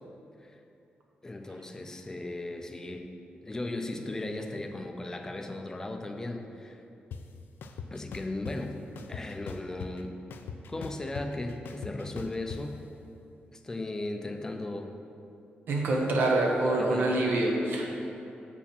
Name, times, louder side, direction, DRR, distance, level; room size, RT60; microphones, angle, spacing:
voice 1, 1.2-3.1 3.4-6.8 7.9-8.8 9.1-10.2 10.7-12.8 13.5-14.9 16.6-17.1, left 2 dB, 15° left, 4 dB, 0.5 m, -36 dB
sound 1, 7.1-7.2 7.6-8.6 9.0-10.0 10.3-12.6, left 6 dB, 90° left, 0.4 m, -40 dB
voice 2, 15.7-17.9, right 2 dB, 80° right, 0 dB, 1.1 m, -26 dB
7.1 x 4.8 x 5.4 m, 2.8 s
wide cardioid pair, 145°, 3 cm